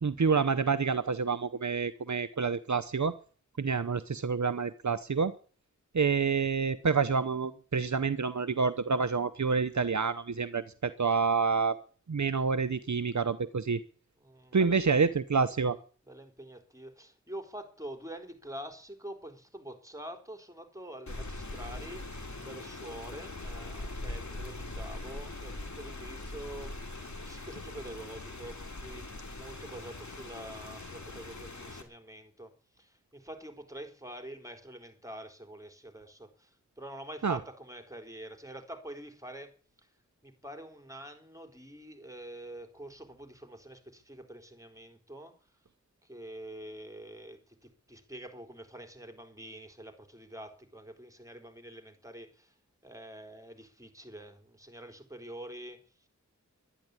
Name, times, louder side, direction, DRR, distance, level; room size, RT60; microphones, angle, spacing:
voice 1, 0.0-3.1 3.6-5.3 5.9-11.8 12.1-13.8 14.5-15.8 37.2-37.4, right 5 dB, 65° right, 12 dB, 0.8 m, -28 dB
voice 2, 14.2-15.2 16.0-39.5 39.8-39.9 40.2-45.3 46.0-52.6 52.8-55.8, right 1 dB, 10° right, 6 dB, 4.1 m, -46 dB
Rain, 21.1-31.8, left 2 dB, 65° left, 2.9 m, -42 dB
12.0 x 10.5 x 9.7 m, 0.40 s
wide cardioid pair, 50°, 31 cm